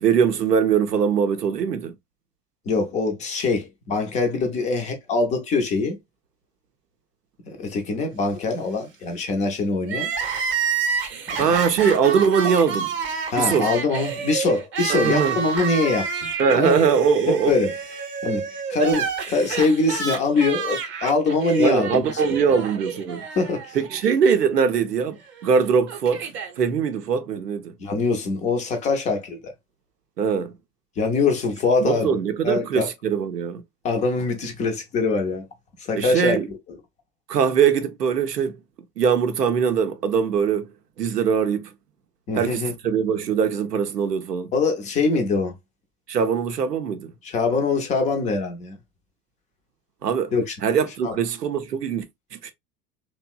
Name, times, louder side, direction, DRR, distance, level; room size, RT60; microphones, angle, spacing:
voice 1, 0.0-1.9 11.4-12.9 13.4-13.7 14.9-15.4 16.4-17.5 21.6-23.2 23.7-26.3 26.6-27.7 30.2-30.5 31.8-33.6 36.0-36.5 37.3-38.6 39.0-40.7 41.0-41.7 42.4-44.5 46.1-47.1 50.0-50.3 50.6-52.1 52.3-52.5, right 6 dB, 85° right, 0.5 m, -21 dB
voice 2, 2.7-6.0 7.5-10.1 11.3-11.5 13.3-16.8 17.3-17.7 18.2-22.0 23.4-23.8 27.8-29.5 31.0-32.2 32.4-32.9 33.8-35.4 35.8-36.6 42.3-42.7 44.5-45.5 47.2-48.8 50.3-50.6 51.0-51.2, left 3 dB, 15° left, 0.4 m, -23 dB
Crying sobbing, 9.8-24.0 24.3-24.4 25.4-26.5, right 6 dB, 25° right, 0.6 m, -29 dB
2.8 x 2.0 x 2.2 m
figure-of-eight pair, 75°, 47 cm